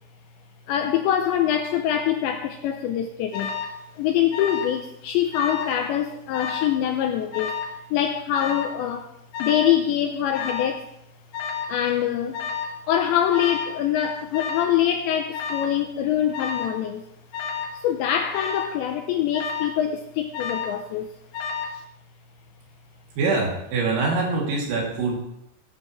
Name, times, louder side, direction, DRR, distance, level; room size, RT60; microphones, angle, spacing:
voice 1, 0.7-3.6 4.0-7.5 7.9-9.1 9.4-10.8 11.7-12.4 12.9-17.1 17.7-21.1, left 10 dB, 85° left, 5 dB, 2.6 m, -24 dB
Alarm, 3.3-3.8 4.3-4.8 5.1-5.8 6.3-6.8 7.3-7.8 8.3-8.8 9.3-9.8 10.3-10.8 11.3-11.8 12.3-12.8 13.3-13.8 14.3-14.8 15.3-15.8 16.3-16.8 17.3-17.8 18.3-18.8 19.3-19.8 20.3-20.8 21.3-21.8, left 6 dB, 70° left, 3.3 m, -31 dB
voice 2, 23.2-25.1, right 3 dB, 80° right, -2 dB, 5.5 m, -24 dB
18.0 x 10.5 x 3.2 m, 0.81 s
omnidirectional pair, 5.9 m